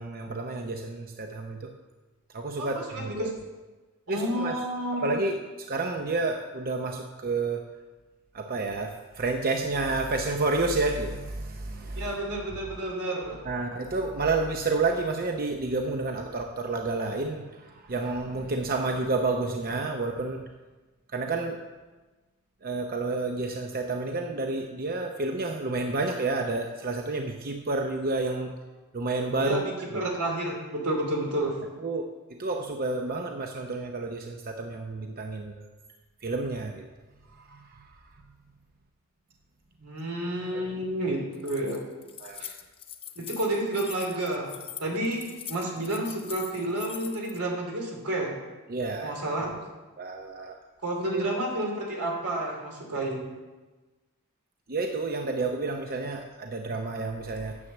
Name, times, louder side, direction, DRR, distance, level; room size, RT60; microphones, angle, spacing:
voice 1, 0.0-1.7 2.3-3.3 4.1-4.6 5.0-7.6 8.3-12.1 13.4-20.4 21.1-21.6 22.6-28.5 28.9-29.6 29.9-30.0 31.8-35.7 36.2-36.8 37.3-38.2 40.5-40.7 42.2-42.5 48.7-49.4 50.0-50.6 51.1-51.2 54.7-57.6, right 3 dB, 40° right, 4 dB, 0.7 m, -30 dB
voice 2, 2.6-3.3 4.1-5.2 12.0-13.4 29.4-31.6 39.8-41.8 42.4-42.5 43.2-44.5 44.8-48.4 49.0-49.5 50.8-53.2, right 1 dB, 85° right, 0 dB, 2.9 m, -30 dB
Keys jangling, 41.3-47.4, left 9 dB, 25° left, 0.7 m, -42 dB
9.8 x 7.3 x 7.2 m, 1.2 s
head